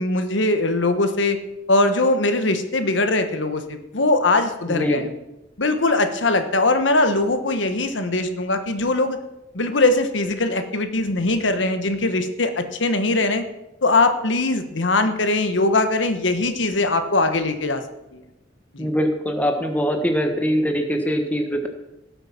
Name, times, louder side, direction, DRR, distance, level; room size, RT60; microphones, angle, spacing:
voice 1, 0.0-1.4 1.7-5.1 5.6-9.2 9.5-13.4 13.8-17.8 18.1-18.2 18.7-18.9, left 2 dB, 85° left, 8 dB, 1.3 m, -21 dB
voice 2, 4.7-5.1 18.8-21.7, equal, 10° left, 5 dB, 1.4 m, -22 dB
17.5 x 8.0 x 5.9 m, 0.94 s
head